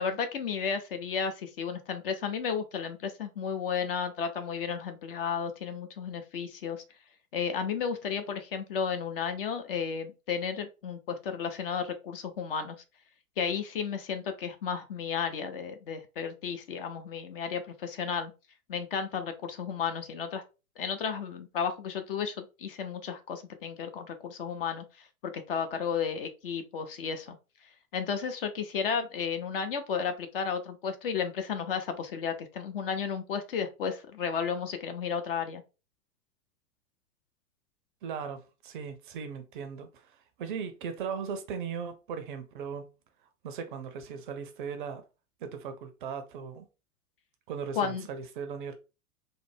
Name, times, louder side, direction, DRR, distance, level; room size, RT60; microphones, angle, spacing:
voice 1, 0.0-6.8 7.3-12.8 13.4-18.3 18.7-20.4 20.8-27.4 27.9-35.6 47.8-48.1, left 6 dB, 40° left, 0.5 m, -33 dB
voice 2, 38.0-42.9 43.4-45.0 45.4-46.7 47.5-48.7, right 6 dB, 35° right, 0.5 m, -38 dB
3.1 x 2.1 x 3.2 m
figure-of-eight pair, 95°, 44 cm